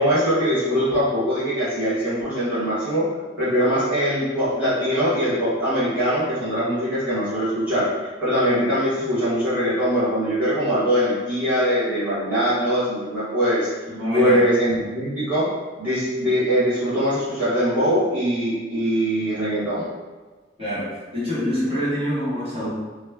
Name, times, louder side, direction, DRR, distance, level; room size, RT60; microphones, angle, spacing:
voice 1, 0.0-3.1 3.4-7.9 8.2-13.7 14.1-15.5 15.8-19.9, equal, 10° right, -14 dB, 1.2 m, -22 dB
voice 2, 13.9-14.4 20.6-22.7, equal, 35° right, -11 dB, 1.4 m, -25 dB
3.0 x 2.3 x 3.4 m, 1.3 s
head